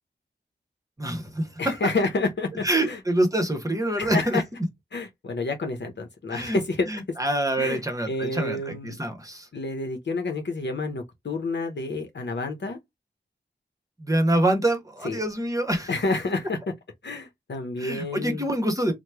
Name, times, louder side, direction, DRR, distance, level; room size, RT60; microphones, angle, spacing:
voice 1, 1.0-1.9 2.6-4.4 6.3-6.6 6.9-9.5 14.0-15.9 17.8-18.9, right 1 dB, 20° right, 1.1 m, -26 dB
voice 2, 1.6-3.0 4.0-4.4 4.9-6.9 7.6-7.8 8.1-9.0 9.5-12.8 15.0-15.2 15.9-16.6 17.0-18.4, left 3 dB, 70° left, 0.8 m, -29 dB
3.0 x 2.1 x 3.4 m
wide cardioid pair, 55°, 19 cm